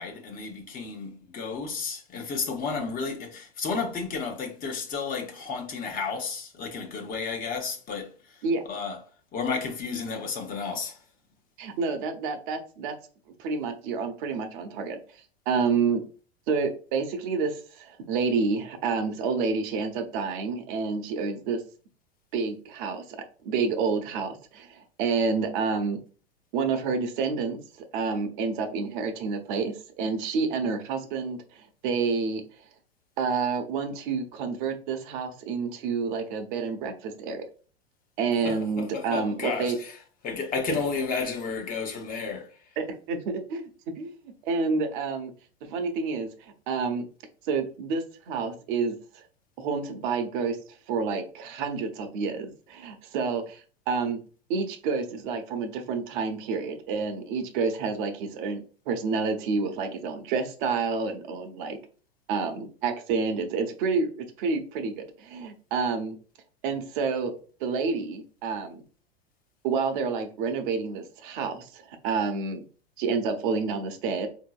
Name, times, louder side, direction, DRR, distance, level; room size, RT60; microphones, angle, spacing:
voice 1, 0.0-8.1 8.7-9.0 9.3-10.9 38.4-39.9 40.2-42.5, left 5 dB, 30° left, 0.8 m, -32 dB
voice 2, 11.6-12.9 13.4-15.0 15.5-16.0 16.5-21.6 22.3-23.2 23.4-26.0 26.5-27.6 27.9-32.4 33.2-37.5 38.2-39.8 40.7-40.8 42.8-43.6 44.0-44.2 44.4-45.3 45.7-47.1 47.4-49.0 49.6-50.6 50.9-54.2 54.5-61.8 62.3-66.2 66.6-67.3 67.6-68.8 69.6-72.6 73.0-74.3, right 5 dB, 55° right, 0.8 m, -29 dB
3.8 x 2.7 x 2.3 m
hypercardioid pair, 100°, 31 cm